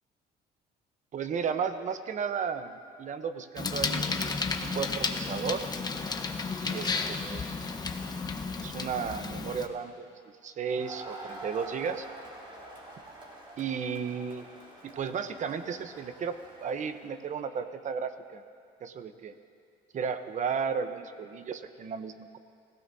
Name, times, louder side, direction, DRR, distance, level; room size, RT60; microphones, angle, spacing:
voice 1, 1.1-5.7 6.6-7.4 8.6-10.1 10.4-12.1 13.6-14.5 14.8-18.4 18.8-19.3 19.9-22.4, right 6 dB, 45° right, 10 dB, 0.9 m, -34 dB
Bicycle, 3.6-9.7, left 4 dB, 25° left, 1.0 m, -32 dB
Crowd, 10.6-17.2, right 2 dB, 30° right, 3.8 m, -46 dB
26.5 x 16.0 x 2.8 m, 2.3 s
cardioid pair, 110°, 17 cm